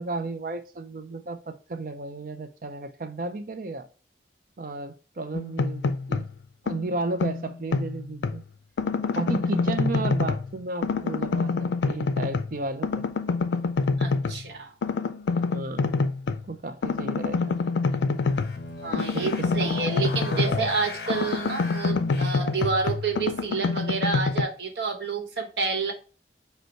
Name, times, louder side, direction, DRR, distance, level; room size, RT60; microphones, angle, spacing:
voice 1, 0.0-3.9 4.6-6.3 6.6-8.4 9.1-11.5 11.9-13.1 15.5-15.9 16.5-17.6 18.9-19.7 20.3-20.4, right 3 dB, 50° right, 0.5 m, -33 dB
sound 1, 5.3-6.3 6.7-8.4 8.8-10.5 10.8-12.6 12.8-14.4 14.8-16.4 16.8-20.8 21.1-24.4, left 4 dB, 80° left, 0.4 m, -26 dB
voice 2, 14.0-14.7 18.8-25.9, right 4 dB, 70° right, 1.1 m, -29 dB
sound 2, 18.2-22.7, left 2 dB, 60° left, 0.8 m, -37 dB
5.2 x 2.2 x 4.5 m
head